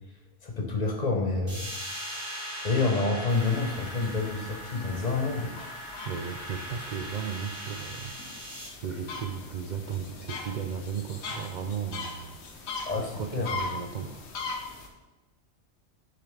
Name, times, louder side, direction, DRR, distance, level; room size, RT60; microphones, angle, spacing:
voice 1, 0.4-1.7 2.6-5.7 12.8-13.5, left 3 dB, 40° left, 0 dB, 0.9 m, -28 dB
sound 1, 1.5-8.7, equal, 45° right, 2.2 m, -40 dB
sound 2, 3.3-14.9, left 4 dB, 65° left, 1.1 m, -41 dB
voice 2, 6.0-14.2, right 7 dB, 60° right, 5 dB, 0.5 m, -36 dB
6.9 x 5.8 x 3.4 m, 1.1 s
omnidirectional pair, 1.3 m